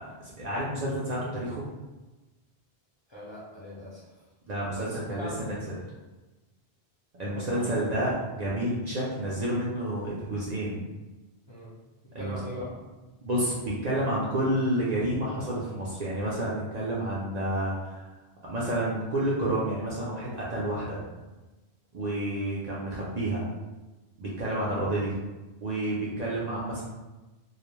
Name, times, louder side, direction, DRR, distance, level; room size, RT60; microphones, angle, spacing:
voice 1, 0.0-1.6 4.5-5.3 5.7-5.8 7.1-10.8 12.1-12.4 13.2-18.1 18.4-21.0 21.9-23.4 24.2-25.2 25.6-26.8, right 1 dB, 55° right, -7 dB, 0.5 m, -30 dB
voice 2, 3.1-4.1 4.7-5.6 7.3-7.7 11.5-11.7 12.2-12.7, left 1 dB, 35° left, -9 dB, 0.5 m, -41 dB
2.3 x 2.1 x 3.0 m, 1.1 s
omnidirectional pair, 1.1 m